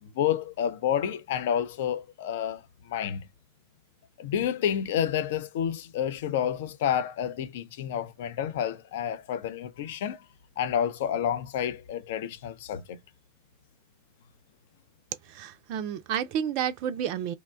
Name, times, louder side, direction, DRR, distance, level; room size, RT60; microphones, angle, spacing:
voice 1, 0.0-2.6 2.9-3.3 4.2-10.2 10.6-13.0, left 9 dB, 55° left, 0.4 m, -29 dB
voice 2, 15.2-17.3, right 9 dB, 45° right, 0.3 m, -30 dB
2.8 x 2.1 x 2.3 m
figure-of-eight pair, 90°, 0 cm